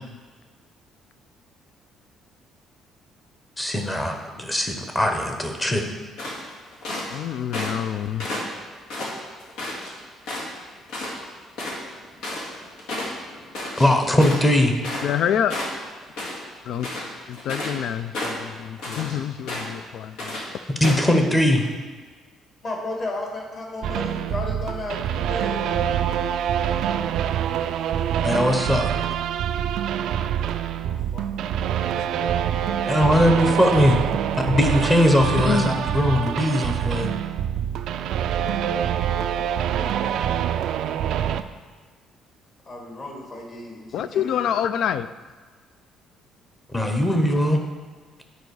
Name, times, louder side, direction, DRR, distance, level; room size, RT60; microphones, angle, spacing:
voice 1, 3.6-5.8 13.8-14.7 20.8-21.6 28.2-28.9 32.9-34.0 34.3-37.1 46.7-47.6, left 1 dB, 10° left, 4 dB, 0.8 m, -20 dB
sound 1, 6.2-7.2 7.5-7.9 8.2-9.9 10.2-10.6 10.9-11.1 11.4-15.2 15.5-16.4 16.7-17.8 18.1-19.1 19.5-19.8 20.2-20.4 20.8-21.1, left 1 dB, 85° left, 2.0 m, -31 dB
voice 2, 7.1-8.3 15.0-15.6 16.2-16.3 16.6-16.9 17.3-20.4 20.8-21.3 35.3-35.7 43.9-45.1, left 9 dB, 65° left, 14 dB, 0.3 m, -27 dB
voice 3, 22.6-25.6 30.1-32.1 39.1-40.7 42.6-44.5, left 2 dB, 35° left, -1 dB, 1.7 m, -36 dB
sound 2, 23.8-41.4, right 9 dB, 65° right, 0.3 m, -25 dB
9.3 x 4.8 x 4.8 m, 1.4 s
cardioid pair, 150°, 0 cm